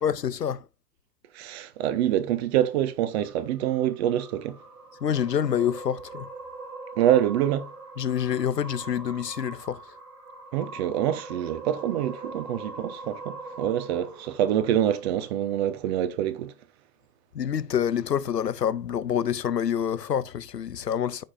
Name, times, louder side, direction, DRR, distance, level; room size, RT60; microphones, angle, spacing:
voice 1, 0.0-0.6 5.0-6.3 8.0-9.8 17.3-21.2, left 9 dB, 85° left, 0.7 m, -27 dB
voice 2, 1.3-4.6 7.0-7.7 10.5-16.5, right 11 dB, 40° right, 1.1 m, -26 dB
sound 1, 3.1-15.6, right 3 dB, 70° right, 3.1 m, -43 dB
14.5 x 4.9 x 2.5 m
figure-of-eight pair, 100°, 48 cm